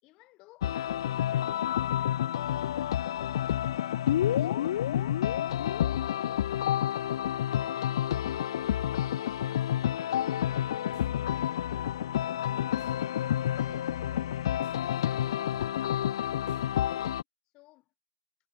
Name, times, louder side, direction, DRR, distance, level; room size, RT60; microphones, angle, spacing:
voice 1, 0.0-2.8 3.3-8.4 8.8-9.7 10.1-13.1 13.6-15.7 16.2-17.2 17.5-17.9, left 20 dB, 20° left, 5.9 m, -59 dB
sound 1, 0.6-17.2, left 11 dB, 40° left, 0.6 m, -29 dB
sound 2, 10.7-17.1, right 17 dB, 15° right, 3.8 m, -59 dB
hypercardioid pair, 160°, 4 cm